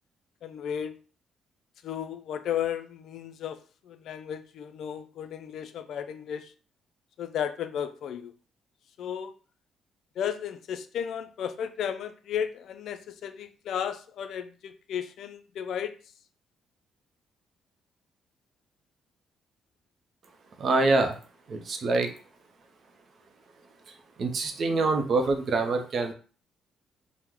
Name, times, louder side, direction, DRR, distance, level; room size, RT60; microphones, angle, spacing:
voice 1, 0.4-1.0 1.8-6.5 7.2-8.3 9.0-9.3 10.2-16.0, left 9 dB, 75° left, 0.3 m, -34 dB
voice 2, 20.6-21.2 21.5-22.1 24.2-26.1, right 3 dB, 55° right, 0.6 m, -25 dB
2.9 x 2.0 x 3.6 m
cardioid pair, 90°, 0 cm